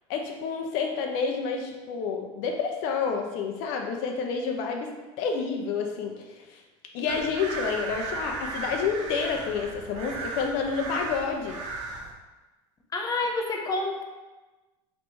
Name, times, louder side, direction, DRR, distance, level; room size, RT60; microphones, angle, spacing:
voice 1, 0.1-4.9 5.2-6.1 6.5-6.6 6.9-11.6, left 5 dB, 65° left, 2 dB, 0.6 m, -29 dB
sound 1, 7.1-12.1, right 3 dB, 50° right, 1.0 m, -36 dB
voice 2, 12.9-14.0, left 2 dB, 25° left, 2 dB, 0.7 m, -28 dB
3.1 x 2.9 x 4.6 m, 1.2 s
supercardioid pair, 95°, 15 cm